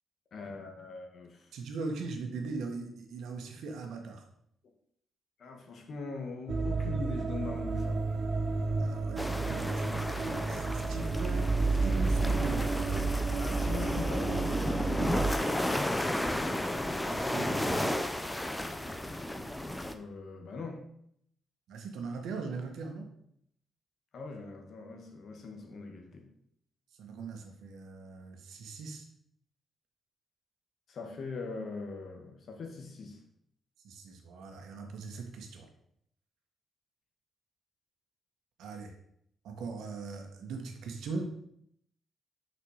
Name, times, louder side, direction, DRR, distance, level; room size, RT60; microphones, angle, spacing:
voice 1, 0.3-1.5 5.4-8.0 13.1-14.3 19.9-20.8 24.1-26.3 30.9-33.2, left 4 dB, 45° left, 3 dB, 1.8 m, -41 dB
voice 2, 1.5-4.2 8.8-12.7 17.0-18.0 21.7-23.1 27.0-29.0 33.8-35.7 38.6-38.9 39.4-41.5, right 4 dB, 80° right, 4 dB, 1.7 m, -40 dB
sound 1, 6.5-15.3, right 4 dB, 35° right, 0.6 m, -31 dB
sound 2, 9.2-19.9, left 1 dB, 5° left, 0.6 m, -33 dB
6.4 x 6.0 x 6.5 m, 0.72 s
cardioid pair, 170°, 0 cm